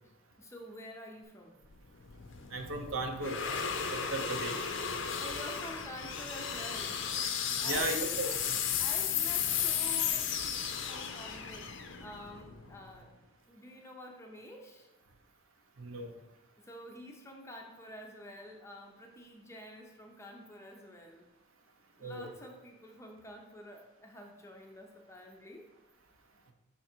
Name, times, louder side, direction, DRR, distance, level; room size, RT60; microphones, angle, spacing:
voice 1, 0.4-1.7 5.2-7.0 7.6-8.4 8.8-13.1 13.5-14.9 16.6-21.3 22.0-25.7, left 1 dB, 15° left, 1 dB, 0.6 m, -48 dB
sound 1, 1.7-12.9, left 7 dB, 55° left, 0.6 m, -34 dB
voice 2, 2.5-3.4 3.9-4.8 7.6-8.6 15.8-16.1 22.0-22.3, right 2 dB, 70° right, 4 dB, 0.8 m, -36 dB
5.6 x 3.8 x 4.4 m, 1.0 s
head